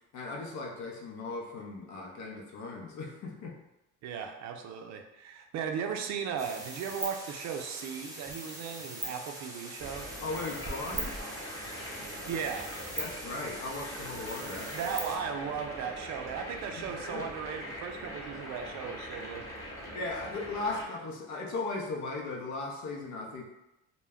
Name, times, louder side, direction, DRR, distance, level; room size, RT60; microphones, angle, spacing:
voice 1, 0.1-3.6 10.2-11.1 13.0-14.7 16.8-17.3 19.9-23.4, left 3 dB, 60° left, 0 dB, 0.7 m, -37 dB
voice 2, 4.0-10.1 12.3-12.7 14.7-19.5, right 7 dB, 55° right, 4 dB, 0.5 m, -36 dB
sound 1, 6.4-15.2, right 2 dB, 10° right, 0.6 m, -41 dB
sound 2, 9.8-20.9, equal, 10° left, 1.0 m, -42 dB
2.1 x 2.1 x 3.4 m, 0.94 s
supercardioid pair, 85°, 33 cm